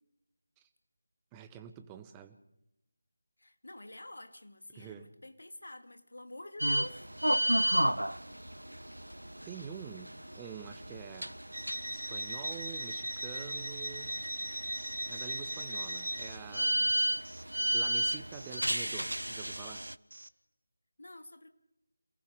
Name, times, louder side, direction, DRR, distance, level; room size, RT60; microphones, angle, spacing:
voice 1, 1.3-2.4 4.7-5.1 9.4-11.4 11.9-14.1 15.1-16.8 17.7-19.9, right 8 dB, 10° right, 8 dB, 1.0 m, -47 dB
voice 2, 3.4-7.1 16.8-16.9 21.0-21.5, left 1 dB, 60° left, 8 dB, 2.2 m, -48 dB
sound 1, 6.6-19.9, right 1 dB, 75° right, 0.6 m, -33 dB
Alarm, 14.8-20.3, right 2 dB, 55° right, 1.1 m, -51 dB
27.5 x 18.5 x 5.3 m, 0.84 s
figure-of-eight pair, 165°, 0 cm